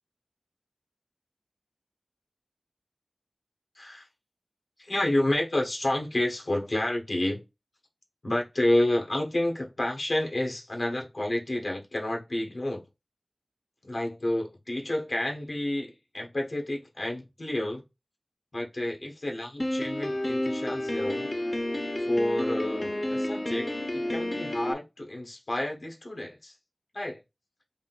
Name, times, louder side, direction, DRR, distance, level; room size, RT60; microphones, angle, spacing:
voice 1, 3.7-4.1 4.8-7.4 8.2-12.8 13.8-17.8 18.5-21.3 22.0-26.5 26.9-27.2, left 1 dB, 75° left, 1.1 m, -30 dB
Piano, 19.6-24.7, left 1 dB, 35° left, 0.5 m, -30 dB
3.7 x 2.5 x 3.8 m
wide cardioid pair, 55°, 0 cm